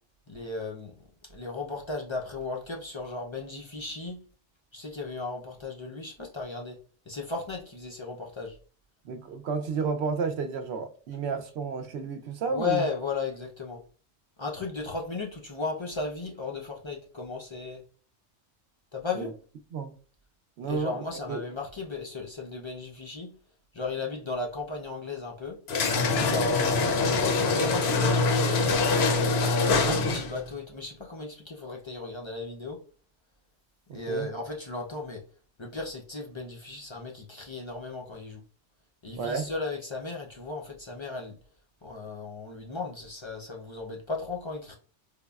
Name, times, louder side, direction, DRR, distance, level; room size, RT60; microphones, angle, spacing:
voice 1, 0.3-1.0 1.3-4.2 4.7-6.8 7.1-8.6 12.5-13.8 14.4-17.8 18.9-19.4 20.6-23.3 23.7-25.6 26.2-26.8 27.2-28.8 29.4-32.8 33.9-35.2 35.6-38.4 39.0-41.4 41.8-44.8, left 3 dB, 45° left, 0.3 m, -35 dB
voice 2, 9.0-12.9 19.7-19.9 20.6-21.0 21.3-21.4 29.7-30.0 33.9-34.3 39.2-39.5, right 5 dB, 70° right, 0.8 m, -31 dB
sound 1, 25.7-30.4, left 3 dB, 65° left, 0.8 m, -24 dB
5.0 x 2.1 x 2.3 m
omnidirectional pair, 1.2 m